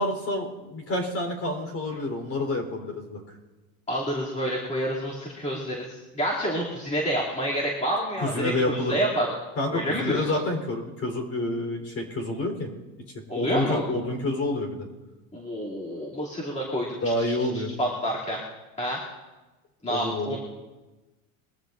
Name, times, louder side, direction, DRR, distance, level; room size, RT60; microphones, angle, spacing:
voice 1, 0.0-3.2 8.2-9.0 9.6-12.7 13.3-14.9 17.0-17.7 19.9-20.4, left 1 dB, 30° left, 3 dB, 4.1 m, -28 dB
voice 2, 3.9-9.3 9.7-10.3 13.3-13.9 15.3-16.9 17.2-18.4 18.8-19.0 19.8-20.4, equal, 15° left, -6 dB, 2.9 m, -28 dB
23.0 x 14.5 x 2.6 m, 1.1 s
supercardioid pair, 135°, 44 cm